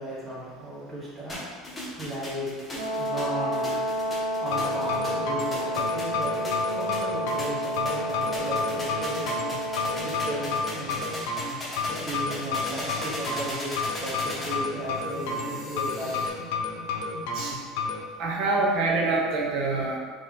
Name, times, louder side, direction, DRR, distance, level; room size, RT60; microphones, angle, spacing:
voice 1, 0.0-2.5 3.0-3.8 4.4-6.3 6.6-9.2 9.8-11.1 11.9-16.2, right 1 dB, 15° right, -7 dB, 1.3 m, -35 dB
sound 1, 1.3-16.3, left 1 dB, 15° left, 1.2 m, -38 dB
Brass instrument, 2.7-10.7, equal, 90° right, 0.6 m, -30 dB
sound 2, 4.4-18.0, left 4 dB, 75° left, 0.7 m, -31 dB
voice 2, 18.2-20.0, right 3 dB, 55° right, 0 dB, 0.8 m, -25 dB
4.2 x 3.0 x 3.8 m, 1.5 s
supercardioid pair, 135°, 0 cm